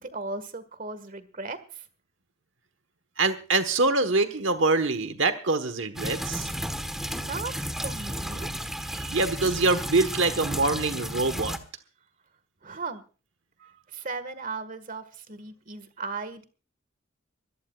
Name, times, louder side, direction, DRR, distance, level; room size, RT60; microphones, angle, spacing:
voice 1, 0.0-1.8 7.1-8.5 12.6-13.0 13.9-16.4, right 3 dB, 45° right, 13 dB, 1.7 m, -37 dB
voice 2, 3.2-6.5 8.9-11.6, right 3 dB, 70° right, 10 dB, 1.3 m, -25 dB
sound 1, 6.0-11.6, equal, ahead, 1.3 m, -33 dB
24.0 x 17.0 x 2.4 m, 0.36 s
head